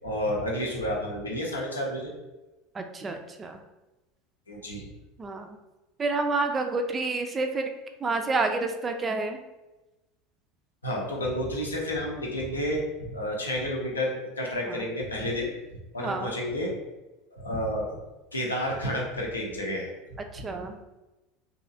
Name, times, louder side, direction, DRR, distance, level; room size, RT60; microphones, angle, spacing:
voice 1, 0.0-2.1 4.5-4.9 10.8-15.5 15.9-16.7 17.3-18.0 18.3-19.9, equal, 80° left, -2 dB, 0.6 m, -30 dB
voice 2, 2.7-3.6 5.2-5.5 6.0-7.7 8.0-9.4 14.7-14.8 16.0-16.3 20.3-20.8, right 3 dB, 25° right, 5 dB, 0.3 m, -29 dB
3.0 x 2.7 x 2.5 m, 1.0 s
figure-of-eight pair, 75°, 0 cm